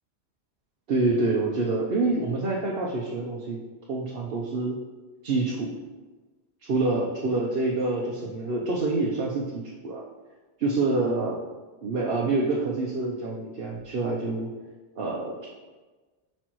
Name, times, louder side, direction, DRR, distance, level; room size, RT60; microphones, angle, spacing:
voice 1, 0.9-3.6 3.9-4.8 5.2-5.7 6.7-10.0 10.6-11.4 11.8-14.5 15.0-15.5, right 3 dB, 60° right, -3 dB, 1.0 m, -27 dB
8.7 x 5.4 x 3.0 m, 1.3 s
omnidirectional pair, 1.2 m